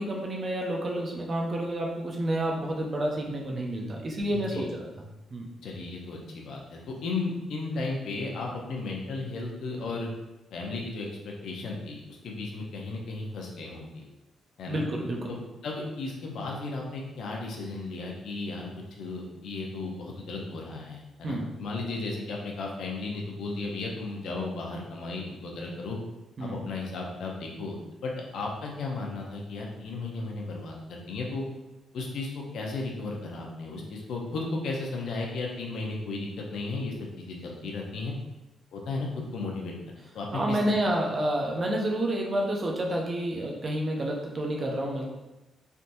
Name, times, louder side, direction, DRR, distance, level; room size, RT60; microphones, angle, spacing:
voice 1, 0.0-4.8 5.3-5.5 14.7-15.3 21.2-21.5 26.4-26.5 40.3-45.1, right 1 dB, 30° right, 0 dB, 0.5 m, -29 dB
voice 2, 4.3-4.7 5.6-10.1 10.5-14.1 14.6-14.8 15.3-26.0 26.4-27.8 28.0-31.4 31.9-38.1 38.7-40.8, left 3 dB, 65° left, -1 dB, 0.6 m, -35 dB
3.4 x 2.8 x 2.6 m, 1.0 s
cardioid pair, 160°, 0 cm